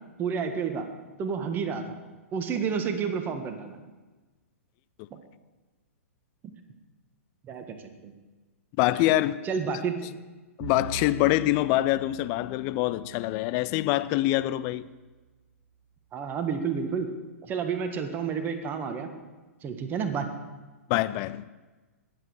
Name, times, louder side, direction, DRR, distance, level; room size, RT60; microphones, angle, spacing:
voice 1, 0.2-0.9 1.2-2.0 2.3-3.8 7.4-7.8 8.0-8.1 8.9-9.0 9.4-10.1 16.1-17.1 17.4-19.1 19.6-20.3, right 6 dB, 25° right, 1.5 m, -30 dB
voice 2, 8.8-9.4 10.6-14.9 20.9-21.4, left 16 dB, 35° left, 0.5 m, -25 dB
Bowed string instrument, 10.6-15.2, right 6 dB, 60° right, 1.7 m, -44 dB
21.0 x 8.6 x 4.9 m
figure-of-eight pair, 110°, 8 cm